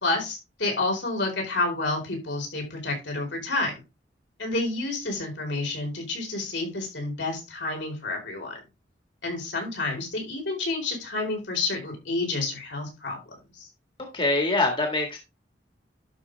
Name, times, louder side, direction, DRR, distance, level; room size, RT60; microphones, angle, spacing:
voice 1, 0.0-3.7 4.4-8.6 9.2-13.2 13.6-13.7, left 2 dB, 75° left, 1 dB, 4.7 m, -29 dB
voice 2, 14.0-15.2, left 2 dB, 30° left, 2 dB, 1.9 m, -24 dB
11.5 x 5.6 x 3.5 m, 0.26 s
head